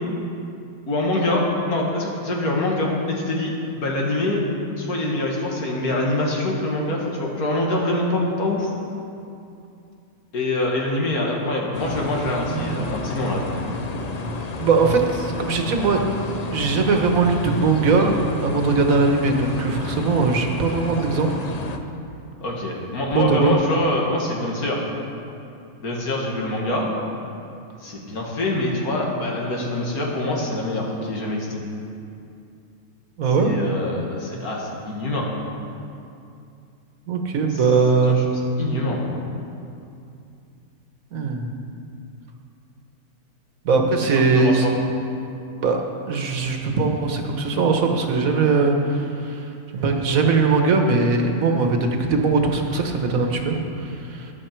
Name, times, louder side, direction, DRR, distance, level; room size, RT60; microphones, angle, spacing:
voice 1, 0.9-4.4 4.8-8.7 10.3-13.6 22.4-24.8 25.8-26.9 27.8-31.6 33.4-35.3 37.5-37.6 38.1-38.2 38.6-39.1 44.1-44.7, left 1 dB, 90° left, -2 dB, 2.3 m, -25 dB
sound 1, 11.7-21.8, left 3 dB, 50° left, 0.5 m, -31 dB
voice 2, 12.5-12.9 14.6-16.0 16.5-18.1 18.4-21.3 23.1-23.6 33.2-33.5 37.1-38.2 41.1-41.5 43.6-44.7 45.5-45.8 46.1-49.5 49.7-54.3, right 4 dB, 70° right, 3 dB, 1.5 m, -20 dB
13.5 x 10.5 x 4.5 m, 2.6 s
omnidirectional pair, 1.5 m